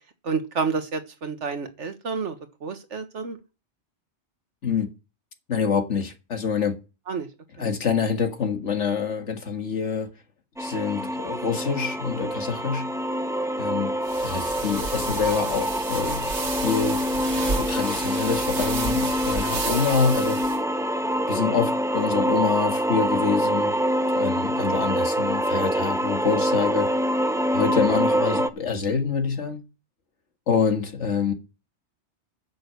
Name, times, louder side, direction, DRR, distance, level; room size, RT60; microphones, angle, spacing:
voice 1, 0.2-2.4 2.6-3.4 7.1-7.3 7.6-7.7, right 5 dB, 90° right, 1.7 m, -29 dB
voice 2, 5.5-6.8 7.6-10.1 10.6-12.9 13.6-16.3 16.6-17.1 17.5-20.4 21.3-23.8 24.1-26.9 27.5-29.6 30.5-31.3, left 6 dB, 85° left, 2.0 m, -26 dB
sound 1, 10.6-28.5, equal, 5° right, 0.4 m, -25 dB
sound 2, 14.0-20.6, right 3 dB, 70° right, 2.1 m, -32 dB
9.6 x 6.3 x 6.8 m
omnidirectional pair, 1.2 m